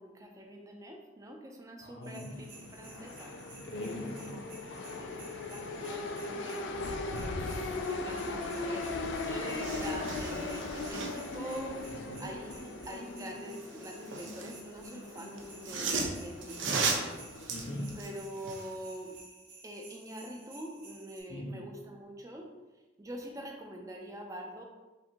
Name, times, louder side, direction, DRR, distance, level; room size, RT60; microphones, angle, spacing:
voice 1, 0.0-3.4 4.2-4.6 5.0-6.7 7.2-7.3 7.8-11.8 12.2-17.2 17.9-19.2 19.6-22.5 23.0-24.6, right 1 dB, 20° right, 1 dB, 0.4 m, -45 dB
voice 2, 1.8-2.4 3.5-4.4 11.9-12.2 17.5-18.0 21.3-21.5, left 1 dB, 65° left, -1 dB, 0.8 m, -40 dB
sound 1, 2.0-21.2, right 3 dB, 55° right, 1.0 m, -54 dB
sound 2, 2.2-18.2, left 3 dB, 80° left, 0.4 m, -39 dB
sound 3, 8.8-8.9 9.1-11.4 13.5-14.6 15.4-18.7 19.1-19.2, right 4 dB, 90° right, 0.6 m, -36 dB
5.1 x 2.6 x 2.8 m, 1.1 s
head